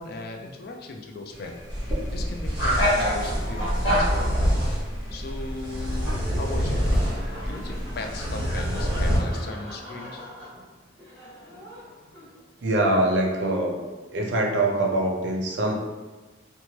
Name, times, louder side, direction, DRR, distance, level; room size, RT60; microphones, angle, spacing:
voice 1, 0.0-1.5 2.1-4.5 5.1-6.9 7.5-10.2, left 2 dB, 50° left, 3 dB, 0.3 m, -37 dB
sound 1, 1.3-9.5, equal, 80° left, 1.1 m, -31 dB
sound 2, 1.7-9.2, equal, 25° right, 0.9 m, -27 dB
Laughter, 6.1-12.6, left 1 dB, 10° left, 1.2 m, -43 dB
voice 2, 12.6-13.8 14.1-15.7, right 1 dB, 65° right, 1 dB, 0.5 m, -23 dB
3.0 x 2.2 x 2.8 m, 1.3 s
head